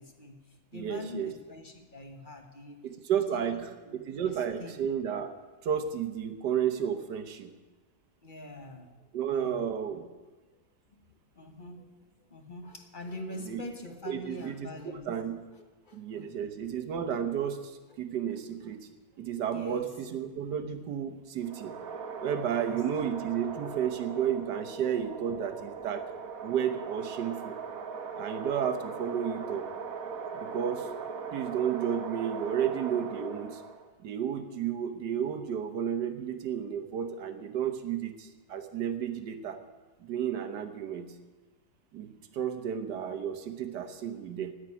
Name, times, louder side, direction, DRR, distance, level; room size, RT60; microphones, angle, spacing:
voice 1, 0.0-2.8 3.3-4.8 8.2-9.7 10.9-11.0 11.3-11.9 12.3-15.1 15.6-16.3 17.9-18.0 18.3-18.7 19.1-19.2 19.5-19.9 22.5-22.8, left 2 dB, 30° left, 5 dB, 1.1 m, -45 dB
voice 2, 0.7-1.3 2.8-3.7 4.1-5.3 5.6-7.5 9.1-10.0 13.3-13.6 14.1-14.7 15.1-15.4 15.9-18.9 19.2-21.8 22.2-26.1 26.4-27.6 28.2-29.7 30.3-30.9 31.3-33.6 34.0-39.6 40.0-41.2 41.9-44.5, right 8 dB, 75° right, 8 dB, 1.6 m, -32 dB
sound 1, 21.4-33.9, right 5 dB, 55° right, 1.4 m, -40 dB
9.8 x 8.2 x 9.6 m, 1.2 s
omnidirectional pair, 1.8 m